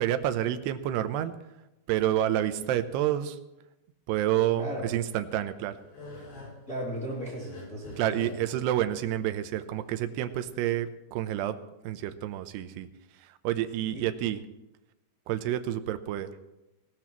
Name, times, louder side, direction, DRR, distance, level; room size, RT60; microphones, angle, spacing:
voice 1, 0.0-1.3 1.9-3.4 4.1-5.7 8.0-11.6 11.8-12.9 13.2-14.4 15.3-16.3, right 12 dB, 85° right, 10 dB, 2.9 m, -29 dB
voice 2, 4.6-4.9 6.7-8.4 13.9-14.0, right 1 dB, 25° left, -5 dB, 2.7 m, -36 dB
sound 1, 5.3-10.4, left 2 dB, 65° left, 8.1 m, -47 dB
19.0 x 19.0 x 3.1 m, 0.95 s
omnidirectional pair, 4.7 m